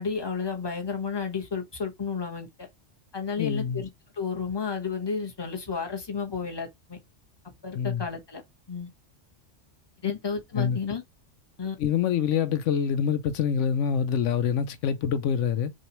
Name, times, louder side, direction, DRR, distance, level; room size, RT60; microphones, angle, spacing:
voice 1, 0.0-2.7 3.1-7.0 7.6-8.4 8.7-8.9 10.0-11.0 11.6-11.8, left 5 dB, 20° left, 1.1 m, -32 dB
voice 2, 3.4-3.8 7.7-8.1 10.5-10.8 11.8-15.7, left 7 dB, 80° left, 0.9 m, -26 dB
6.4 x 2.5 x 3.0 m
omnidirectional pair, 1.3 m